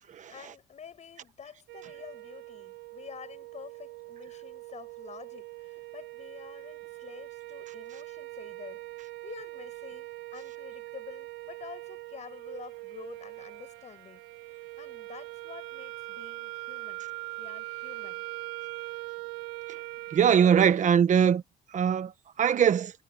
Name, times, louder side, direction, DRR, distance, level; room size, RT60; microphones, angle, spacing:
voice 1, 0.3-17.0 17.4-18.2, left 7 dB, 40° left, 7.6 m, -48 dB
sound 1, 1.7-20.7, right 22 dB, 90° right, 1.7 m, -42 dB
voice 2, 20.1-21.4 21.7-22.1 22.4-22.9, right 8 dB, 45° right, 1.4 m, -21 dB
cardioid pair, 110°, 17 cm